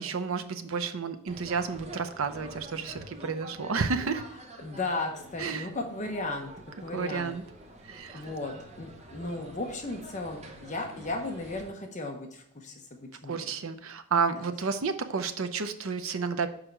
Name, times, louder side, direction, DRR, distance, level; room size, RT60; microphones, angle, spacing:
voice 1, 0.0-4.2 5.4-5.7 6.9-7.4 7.8-8.2 13.3-16.5, right 5 dB, 70° right, 8 dB, 0.6 m, -31 dB
sound 1, 1.3-11.7, right 1 dB, 30° right, 0.8 m, -47 dB
voice 2, 4.6-6.5 6.8-7.4 8.1-13.5 14.4-14.5, left 2 dB, 35° left, 3 dB, 0.8 m, -35 dB
6.3 x 5.0 x 4.5 m, 0.71 s
head